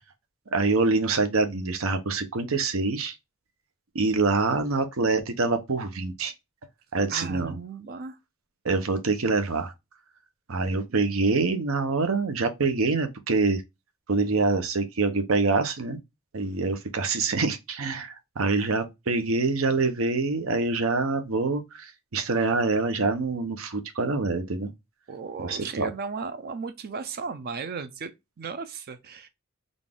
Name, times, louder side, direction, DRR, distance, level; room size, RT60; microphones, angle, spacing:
voice 1, 0.5-3.1 3.9-6.3 6.9-7.6 8.6-9.7 10.5-13.6 14.1-16.0 16.3-24.7 25.4-25.9, right 3 dB, 80° right, 0.8 m, -25 dB
voice 2, 7.1-8.2 18.6-18.7 25.1-28.1 28.4-29.3, right 5 dB, 50° right, 0.5 m, -35 dB
4.0 x 2.4 x 3.5 m
head